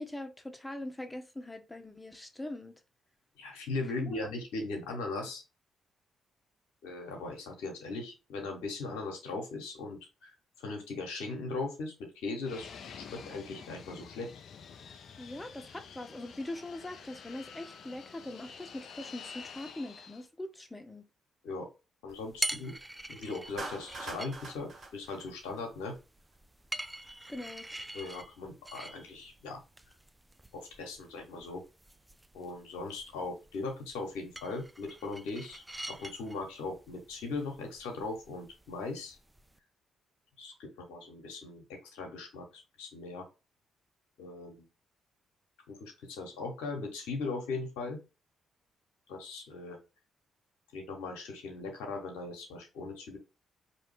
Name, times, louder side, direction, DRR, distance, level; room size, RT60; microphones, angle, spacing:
voice 1, 0.0-2.8 4.0-4.2 15.2-21.0 27.3-27.7, left 1 dB, 15° left, 1.1 m, -42 dB
voice 2, 3.4-5.4 6.8-12.7 13.0-14.3 21.4-21.7 22.0-22.7 23.1-26.0 27.9-29.6 30.5-31.6 32.3-39.2 40.4-43.3 44.2-44.7 45.7-48.0 49.1-49.8 50.7-53.2, left 3 dB, 85° left, 1.0 m, -39 dB
Fixed-wing aircraft airplane, 12.4-20.3, left 6 dB, 65° left, 0.5 m, -49 dB
sound 1, 22.1-39.6, right 1 dB, 10° right, 0.3 m, -45 dB
Clapping, 23.6-26.0, right 3 dB, 65° right, 1.5 m, -43 dB
4.3 x 2.8 x 3.3 m
hypercardioid pair, 50°, 0 cm